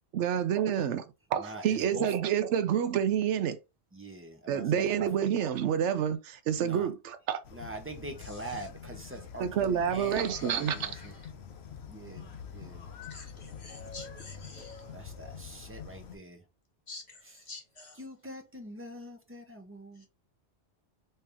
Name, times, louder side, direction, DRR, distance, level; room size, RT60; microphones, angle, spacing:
voice 1, 0.1-1.0 1.3-3.6 4.5-7.4 9.4-10.9, right 9 dB, 80° right, 0.9 m, -28 dB
voice 2, 1.4-2.1 3.9-5.1 6.6-6.9 7.5-11.1 11.9-12.9 14.8-16.4 18.0-20.1, right 1 dB, 15° right, 0.6 m, -44 dB
sound 1, 7.4-16.2, left 7 dB, 70° left, 0.9 m, -46 dB
voice 3, 8.2-8.7 9.1-9.2 10.0-11.3 12.3-12.4 13.1-15.3 16.9-18.0 20.0-20.1, left 2 dB, 45° left, 0.9 m, -48 dB
3.3 x 2.7 x 3.4 m
omnidirectional pair, 1.2 m